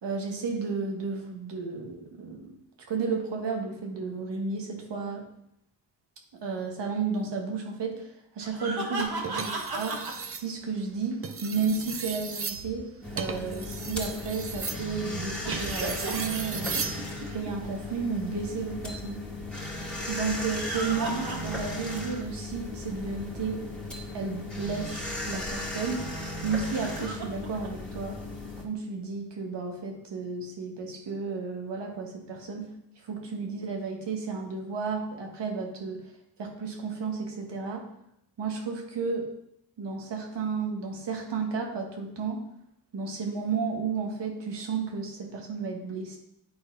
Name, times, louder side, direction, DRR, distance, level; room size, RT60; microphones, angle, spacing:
voice 1, 0.0-5.2 6.4-10.0 10.3-12.9 13.1-17.0 17.3-19.2 20.1-23.6 24.1-26.0 26.4-28.2 28.6-32.7 33.0-36.0 36.4-37.8 38.4-39.3 39.8-42.4 42.9-46.2, right 5 dB, 80° right, 1 dB, 1.7 m, -32 dB
sound 1, 8.4-10.1 15.4-17.5 20.3-21.9 22.3-22.4 24.7-24.8 26.6-27.7, right 2 dB, 60° right, 1.7 m, -35 dB
sound 2, 9.2-10.5 11.1-17.0 18.5-18.7, right 5 dB, 35° right, 0.7 m, -36 dB
sound 3, 13.0-28.6, left 2 dB, ahead, 2.2 m, -36 dB
9.5 x 4.1 x 5.0 m, 0.78 s
cardioid pair, 70°, 42 cm